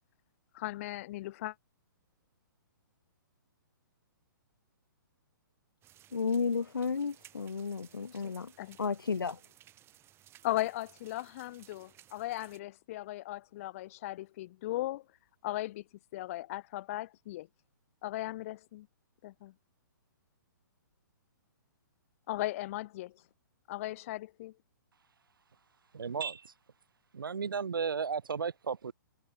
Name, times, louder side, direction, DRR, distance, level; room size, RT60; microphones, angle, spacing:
voice 1, 0.5-1.5 8.1-8.8 10.4-15.0 15.4-15.8 16.1-17.5 18.0-18.9 19.2-19.5 22.3-23.1 23.7-24.5, left 16 dB, 40° left, 0.6 m, -37 dB
sound 1, 5.8-12.6, right 12 dB, 20° right, 4.4 m, -60 dB
voice 2, 6.1-8.5 8.8-9.4, left 5 dB, 80° left, 1.5 m, -32 dB
voice 3, 25.9-26.5 27.1-28.9, right 6 dB, 75° right, 2.8 m, -34 dB
hypercardioid pair, 130°, 11 cm